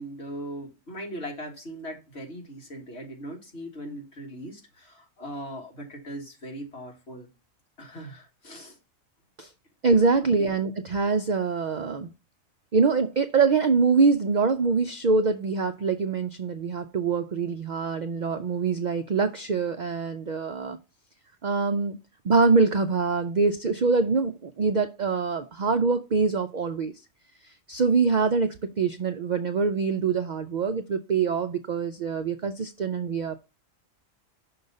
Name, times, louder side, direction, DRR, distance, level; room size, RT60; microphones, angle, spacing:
voice 1, 0.0-7.3 7.8-8.8 10.4-10.5, equal, 50° left, 2.1 m, -39 dB
voice 2, 9.8-12.1 12.7-20.8 21.4-22.0 22.2-26.9 27.7-33.4, right 4 dB, 80° right, 0.4 m, -24 dB
6.0 x 3.9 x 5.3 m
omnidirectional pair, 1.4 m